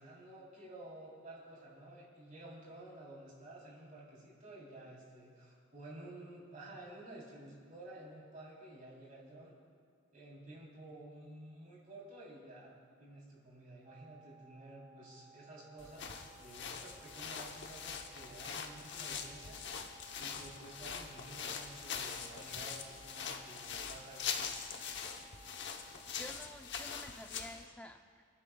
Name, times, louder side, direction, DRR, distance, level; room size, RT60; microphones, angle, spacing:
voice 1, 0.0-9.6 10.1-12.7 13.0-19.6 20.2-24.3, right 1 dB, 45° right, -5 dB, 3.4 m, -52 dB
sound 1, 13.9-26.0, right 4 dB, 30° right, 1.6 m, -61 dB
sound 2, 15.8-27.6, left 6 dB, 60° left, 0.9 m, -43 dB
voice 2, 26.2-28.2, left 1 dB, 5° left, 5 dB, 0.5 m, -51 dB
28.5 x 10.5 x 2.3 m, 2.1 s
head